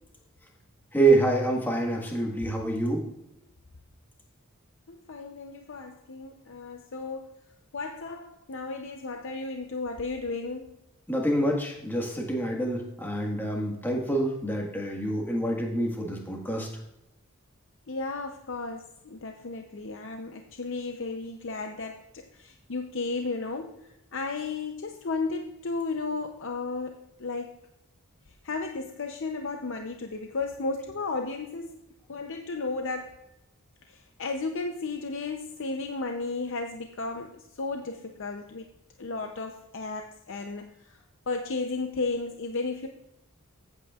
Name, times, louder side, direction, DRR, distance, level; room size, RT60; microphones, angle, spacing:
voice 1, 0.9-3.1 11.1-16.7, right 2 dB, 10° left, -1 dB, 1.6 m, -26 dB
voice 2, 4.9-7.4 7.7-10.7 17.9-23.8 24.1-27.5 28.4-31.8 32.1-33.1 33.9-38.6 39.0-41.0 41.3-42.9, left 3 dB, 60° left, 5 dB, 0.6 m, -34 dB
14.5 x 8.3 x 2.4 m, 0.84 s
head